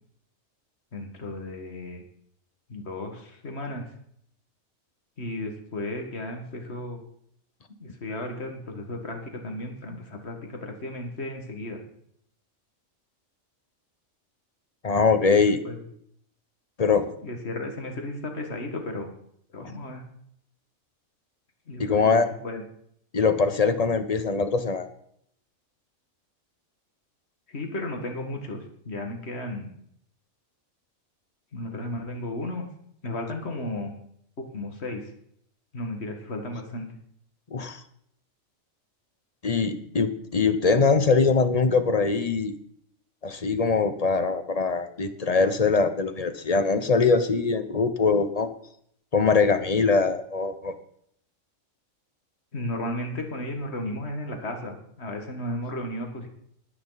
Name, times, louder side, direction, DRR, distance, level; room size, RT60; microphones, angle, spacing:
voice 1, 0.9-2.0 2.7-3.8 5.2-7.0 7.8-11.8 15.3-15.8 17.2-19.1 19.5-20.0 21.7-22.6 27.5-29.7 31.5-32.7 33.0-33.9 34.5-35.1 35.7-36.9 52.5-56.3, left 1 dB, 50° left, 4 dB, 2.2 m, -34 dB
voice 2, 14.8-15.6 16.8-17.1 19.6-19.7 21.8-22.2 23.1-24.9 37.5-37.8 39.4-42.5 43.2-48.5 49.1-50.7, left 4 dB, 30° left, 10 dB, 1.0 m, -22 dB
20.0 x 9.4 x 4.1 m, 0.70 s
omnidirectional pair, 1.4 m